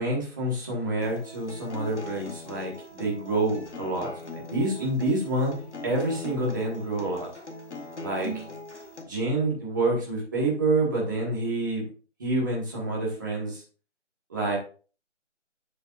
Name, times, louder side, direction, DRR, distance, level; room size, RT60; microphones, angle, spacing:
voice 1, 0.0-2.7 3.0-5.5 5.8-7.3 8.0-8.3 9.1-11.8 12.2-13.6 14.3-14.6, right 2 dB, 15° right, -3 dB, 1.9 m, -27 dB
Acoustic guitar, 1.0-9.0, left 1 dB, 65° left, 2.2 m, -40 dB
9.6 x 7.6 x 2.6 m, 0.38 s
figure-of-eight pair, 170°, 37 cm